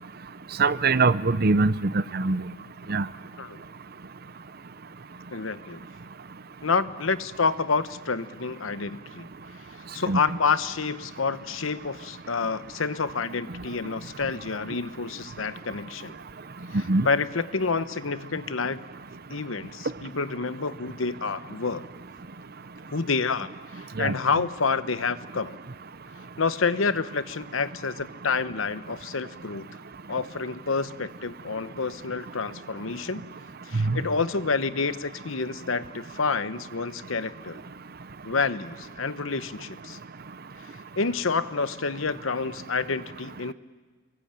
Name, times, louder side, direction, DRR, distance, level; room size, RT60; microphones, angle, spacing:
voice 1, 0.6-2.4 2.9-3.1 10.1-10.2 16.9-17.1 24.0-24.1 33.7-34.0, right 3 dB, 50° right, 15 dB, 0.8 m, -22 dB
voice 2, 5.3-5.8 6.6-9.3 9.9-16.2 17.0-18.8 19.3-21.9 22.9-25.6 26.4-29.7 30.1-33.2 33.6-37.6 38.2-40.0 41.0-43.5, left 4 dB, 85° left, 13 dB, 1.0 m, -28 dB
29.0 x 23.5 x 8.9 m, 1.4 s
head